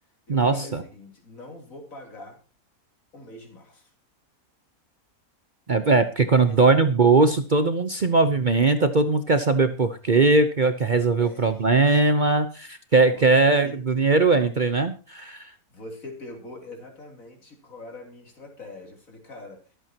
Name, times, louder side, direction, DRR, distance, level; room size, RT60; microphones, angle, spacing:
voice 1, 0.3-2.4 3.1-3.9 6.4-6.6 11.2-11.9 13.1-13.3 13.6-13.8 14.0-14.5 15.7-19.6, left 2 dB, 65° left, 3 dB, 3.6 m, -43 dB
voice 2, 5.7-15.5, right 3 dB, 40° right, 9 dB, 0.9 m, -20 dB
23.0 x 8.1 x 2.9 m, 0.35 s
omnidirectional pair, 1.5 m